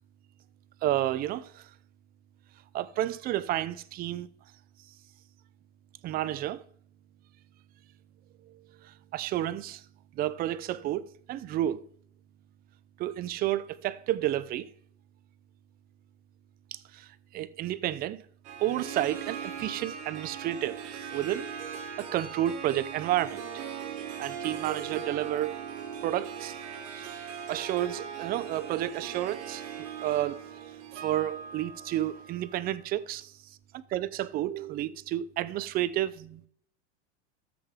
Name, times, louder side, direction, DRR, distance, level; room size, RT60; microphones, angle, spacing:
voice 1, 0.8-1.7 2.7-4.3 6.0-6.6 8.5-9.8 10.1-11.8 13.0-14.7 16.7-18.2 18.6-21.5 22.0-23.4 24.2-25.6 26.0-26.6 26.9-30.4 31.0-36.4, right 13 dB, 25° right, 0.5 m, -31 dB
Harp, 18.4-32.9, right 7 dB, 80° right, 2.0 m, -40 dB
13.5 x 7.7 x 3.6 m
supercardioid pair, 135°, 36 cm